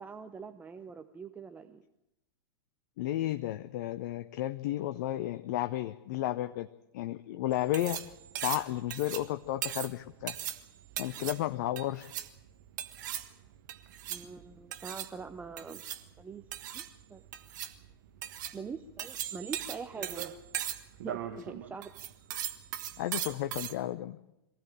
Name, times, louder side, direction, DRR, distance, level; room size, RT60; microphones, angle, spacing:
voice 1, 0.0-1.8 11.2-11.3 14.1-15.8 16.2-16.4 16.7-17.2 18.5-20.3 21.0-21.9, right 5 dB, 10° right, 9 dB, 0.8 m, -43 dB
voice 2, 3.0-6.7 6.9-8.0 8.4-10.4 11.0-12.1 23.0-24.2, left 14 dB, 45° left, 10 dB, 0.8 m, -33 dB
sound 1, 7.5-23.7, right 11 dB, 50° right, 1.4 m, -39 dB
23.0 x 16.0 x 8.7 m, 0.89 s
figure-of-eight pair, 100°, 13 cm